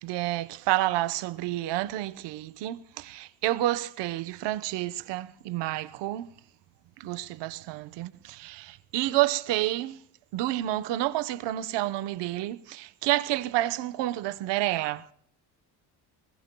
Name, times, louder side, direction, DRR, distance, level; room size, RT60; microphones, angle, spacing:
voice 1, 0.0-6.3 7.0-10.0 10.3-15.1, right 15 dB, 85° right, 1.1 m, -29 dB
24.5 x 21.5 x 2.3 m
cardioid pair, 170°, 41 cm